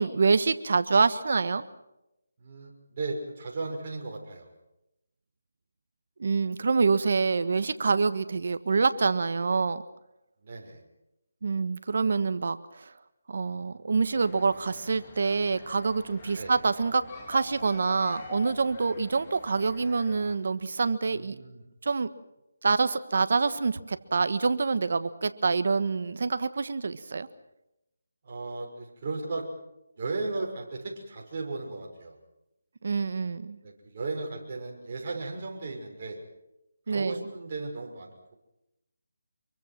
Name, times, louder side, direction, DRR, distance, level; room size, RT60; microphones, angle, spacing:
voice 1, 0.0-1.6 6.2-9.8 11.4-12.9 13.3-17.0 17.3-21.4 21.8-22.1 22.6-27.3 32.8-33.6 36.9-37.2, right 4 dB, 60° right, 12 dB, 1.5 m, -26 dB
voice 2, 2.4-4.5 10.4-10.8 13.5-13.9 16.4-16.6 21.1-21.6 28.2-29.5 30.0-32.2 33.6-36.2 36.9-38.3, right 3 dB, 40° right, 0 dB, 6.1 m, -36 dB
sound 1, 14.1-20.3, left 4 dB, 25° left, 4.0 m, -46 dB
26.0 x 23.5 x 6.1 m, 0.87 s
figure-of-eight pair, 160°, 0 cm